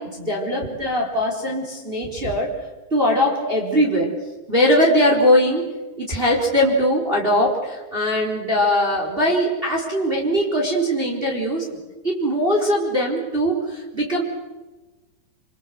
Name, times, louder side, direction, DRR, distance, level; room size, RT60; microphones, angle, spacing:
voice 1, 0.0-2.5 2.9-4.1 4.5-5.7 6.0-11.8 12.0-14.2, equal, 10° right, -1 dB, 4.0 m, -21 dB
27.5 x 25.0 x 8.0 m, 1.2 s
omnidirectional pair, 5.3 m